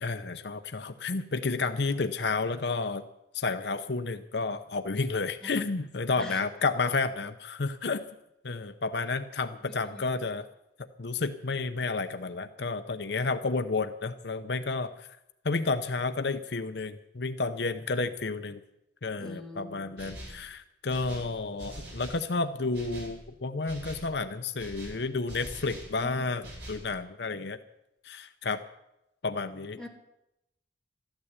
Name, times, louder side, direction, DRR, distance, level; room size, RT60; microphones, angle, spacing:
voice 1, 0.0-3.0 3.3-8.0 8.4-10.5 11.0-15.1 15.4-18.6 19.0-26.4 26.7-27.6 28.0-28.6 29.2-29.8, left 3 dB, 70° left, 9 dB, 0.8 m, -31 dB
voice 2, 9.7-10.0 19.2-20.3 26.0-26.3 29.8-29.9, left 2 dB, 5° left, -1 dB, 2.3 m, -44 dB
sound 1, 20.0-20.5 20.9-22.3 22.7-23.2 23.7-24.1 24.6-26.0 26.4-26.9, right 1 dB, 70° right, 6.7 m, -44 dB
13.5 x 11.5 x 8.2 m, 0.86 s
head